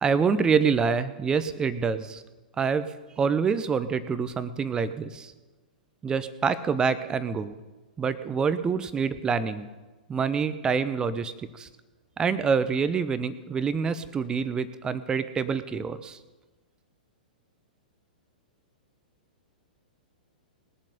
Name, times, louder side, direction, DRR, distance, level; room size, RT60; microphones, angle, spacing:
voice 1, 0.0-2.2 2.6-2.9 3.2-5.3 6.0-7.6 8.0-9.7 10.1-11.7 12.2-16.2, right 5 dB, 15° right, 14 dB, 0.7 m, -26 dB
20.0 x 7.5 x 5.3 m, 1.2 s
figure-of-eight pair, 105°, 5 cm